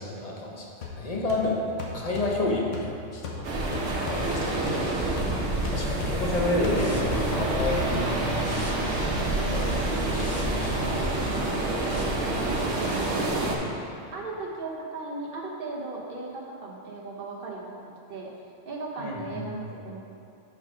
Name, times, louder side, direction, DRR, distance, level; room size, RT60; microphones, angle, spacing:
voice 1, 0.0-3.5 4.0-4.6 5.7-9.8 10.1-10.7 11.7-11.9 19.0-19.4, left 2 dB, 35° left, -2 dB, 0.8 m, -30 dB
sound 1, 0.8-8.5, left 3 dB, 85° left, 1.2 m, -39 dB
sound 2, 3.4-13.6, right 2 dB, 90° right, 1.2 m, -28 dB
sound 3, 5.2-12.0, left 1 dB, 20° left, 0.4 m, -38 dB
voice 2, 9.2-9.5 12.3-13.4 14.1-17.8 18.1-18.3 18.6-20.0, right 3 dB, 50° right, -2 dB, 1.1 m, -37 dB
6.2 x 4.8 x 4.9 m, 2.5 s
omnidirectional pair, 1.2 m